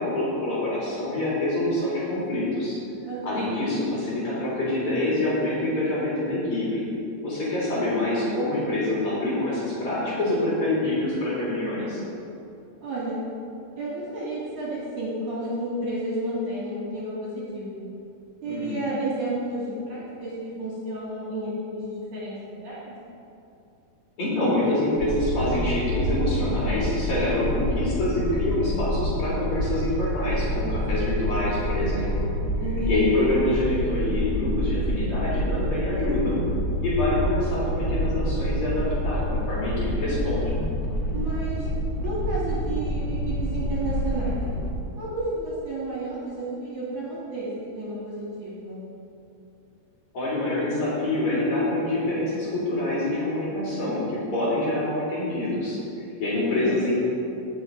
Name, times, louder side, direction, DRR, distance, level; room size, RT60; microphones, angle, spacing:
voice 1, 0.0-2.8 3.2-6.8 7.2-12.0 18.5-18.8 24.2-32.3 32.9-36.4 36.8-40.5 50.1-56.9, left 1 dB, 45° left, -8 dB, 4.0 m, -26 dB
voice 2, 3.0-3.6 12.8-13.2 13.8-17.8 18.4-23.0 32.6-33.3 41.1-41.7 42.0-44.4 45.0-48.8 56.3-56.8, right 1 dB, 50° right, -7 dB, 3.2 m, -31 dB
sound 1, 25.0-44.7, equal, 80° left, 1.1 m, -27 dB
17.0 x 6.7 x 4.6 m, 2.7 s
omnidirectional pair, 4.9 m